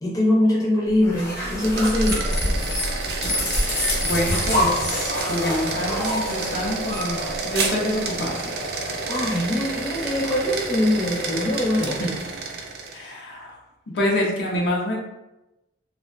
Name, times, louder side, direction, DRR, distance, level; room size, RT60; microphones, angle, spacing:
voice 1, 0.0-2.2 9.1-12.0, left 1 dB, 20° left, -5 dB, 0.5 m, -22 dB
sound 1, 1.0-8.0, left 1 dB, 55° left, 1.0 m, -26 dB
sound 2, 1.3-13.1, right 3 dB, 65° right, 0.4 m, -30 dB
voice 2, 4.0-8.4 11.8-12.1 12.9-13.6 13.9-15.0, left 1 dB, 70° left, -2 dB, 0.6 m, -26 dB
2.5 x 2.1 x 2.3 m, 0.96 s
head